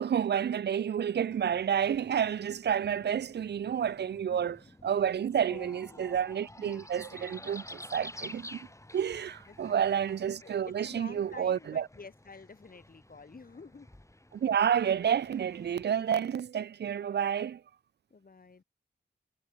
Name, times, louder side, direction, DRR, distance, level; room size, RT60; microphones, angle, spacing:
voice 1, 0.0-8.6 8.9-11.9 14.3-17.6, right 8 dB, 70° right, 0.4 m, -30 dB
sound 1, 1.3-15.9, left 1 dB, 15° left, 4.7 m, -51 dB
voice 2, 4.1-4.5 5.3-6.0 6.5-7.6 8.2-8.6 9.5-10.0 10.4-13.9 18.1-18.6, left 4 dB, 55° left, 2.9 m, -51 dB
wide cardioid pair, 65°, 18 cm